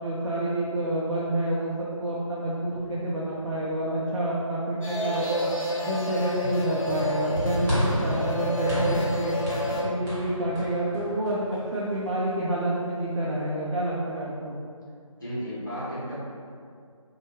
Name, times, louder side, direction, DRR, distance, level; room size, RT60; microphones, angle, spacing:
voice 1, 0.0-5.5 5.8-9.3 9.8-14.6, right 1 dB, 60° right, -7 dB, 0.5 m, -28 dB
sound 1, 4.8-9.8, equal, 70° left, 0.8 m, -28 dB
sound 2, 7.7-12.1, equal, 35° right, 1.2 m, -32 dB
voice 2, 15.2-16.3, equal, 35° left, -9 dB, 1.0 m, -33 dB
3.0 x 2.2 x 3.0 m, 2.2 s
figure-of-eight pair, 170°, 18 cm